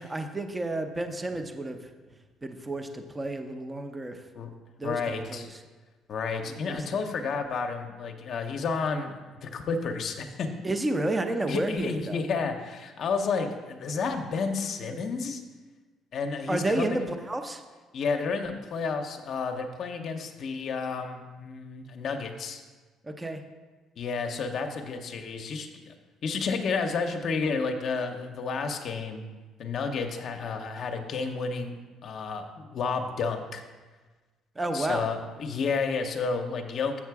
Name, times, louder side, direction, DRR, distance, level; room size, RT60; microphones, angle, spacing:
voice 1, 0.0-1.8 2.4-4.2 4.8-5.5 6.7-6.8 10.6-12.2 16.5-17.0 17.3-17.6 23.0-23.4 34.6-35.0, right 2 dB, 15° right, 6 dB, 0.6 m, -30 dB
voice 2, 4.8-5.5 6.1-9.1 9.4-10.5 11.5-15.4 16.1-17.0 17.9-22.6 24.0-25.9 26.2-29.3 29.6-31.8 32.0-33.6 34.7-37.0, left 4 dB, 50° left, 5 dB, 0.7 m, -31 dB
7.3 x 6.6 x 4.7 m, 1.3 s
cardioid pair, 135°, 0 cm